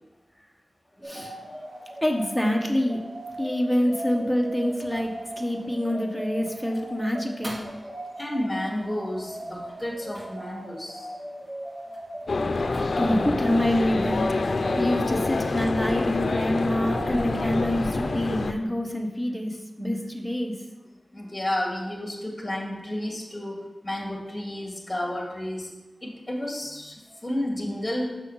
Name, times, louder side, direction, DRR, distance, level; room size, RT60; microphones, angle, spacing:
voice 1, 1.0-3.0 3.4-7.6 13.0-20.6 27.1-27.2, left 1 dB, ahead, 1 dB, 1.1 m, -26 dB
sound 1, 1.0-18.3, right 1 dB, 65° right, 2.3 m, -39 dB
sound 2, 3.2-14.4, equal, 20° right, 1.3 m, -49 dB
voice 2, 8.2-11.1 21.1-25.7 26.0-28.1, left 1 dB, 15° left, -1 dB, 2.0 m, -31 dB
sound 3, 12.3-18.5, left 3 dB, 70° left, 0.5 m, -26 dB
6.5 x 6.2 x 5.6 m, 1.1 s
wide cardioid pair, 80°, 0 cm